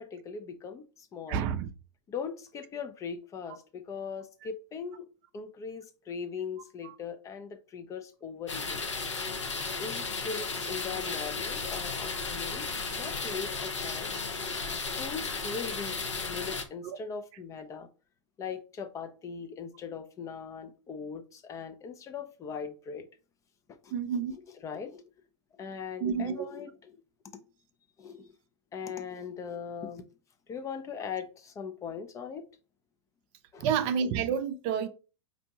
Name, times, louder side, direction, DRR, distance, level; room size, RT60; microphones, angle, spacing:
voice 1, 0.0-1.5 2.1-5.1 5.3-8.9 9.8-14.1 14.5-16.0 16.3-17.9 18.4-23.1 23.7-23.9 24.6-25.0 25.5-27.0 27.3-27.4 28.0-28.3 28.7-30.1 30.5-32.4 33.5-33.7, left 6 dB, 20° left, 0.4 m, -40 dB
voice 2, 1.3-1.7 6.8-7.0 16.8-17.0 23.9-24.4 26.0-26.5 33.6-34.9, right 7 dB, 40° right, 0.4 m, -29 dB
sound 1, 8.5-16.6, left 4 dB, 80° left, 0.7 m, -34 dB
4.2 x 2.7 x 2.7 m
figure-of-eight pair, 100°, 15 cm